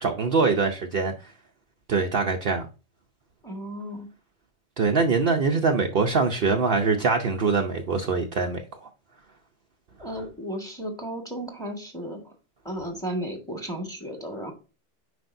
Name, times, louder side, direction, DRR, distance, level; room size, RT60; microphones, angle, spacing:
voice 1, 0.0-1.1 1.9-2.7 4.8-8.9, right 4 dB, 55° right, 0.8 m, -23 dB
voice 2, 3.4-4.1 10.0-12.3 12.6-14.5, equal, 5° left, 1.5 m, -34 dB
7.7 x 5.1 x 2.6 m
omnidirectional pair, 1.3 m